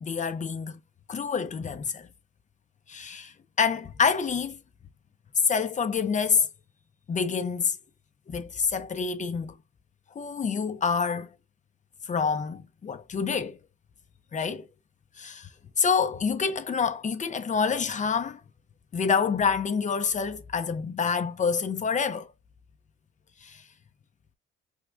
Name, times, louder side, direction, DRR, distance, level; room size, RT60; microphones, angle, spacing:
voice 1, 0.0-0.8 1.1-2.1 2.9-4.6 5.4-6.5 7.1-7.8 8.3-9.6 10.1-11.3 12.1-13.6 14.3-14.7 15.2-15.5 15.8-18.4 18.9-22.3 23.4-23.6, left 6 dB, 40° left, 0.7 m, -27 dB
4.8 x 3.6 x 2.2 m
cardioid pair, 90°, 20 cm